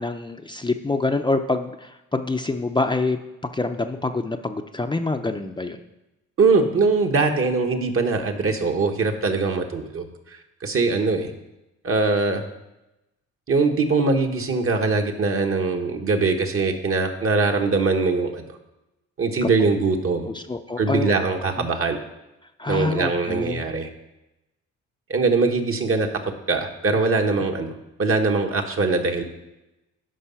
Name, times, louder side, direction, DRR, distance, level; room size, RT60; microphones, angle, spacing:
voice 1, 0.0-3.2 3.5-5.8 19.4-19.7 20.3-21.1 21.6-21.7 22.6-23.6, left 3 dB, 15° left, 5 dB, 0.6 m, -26 dB
voice 2, 6.4-10.1 10.6-11.3 11.8-12.4 13.5-18.4 19.2-20.3 20.8-22.0 22.7-23.9 25.1-26.1 26.5-27.7 28.0-29.2, right 3 dB, 45° right, 3 dB, 1.4 m, -22 dB
11.5 x 5.5 x 5.7 m, 0.96 s
cardioid pair, 90°, 30 cm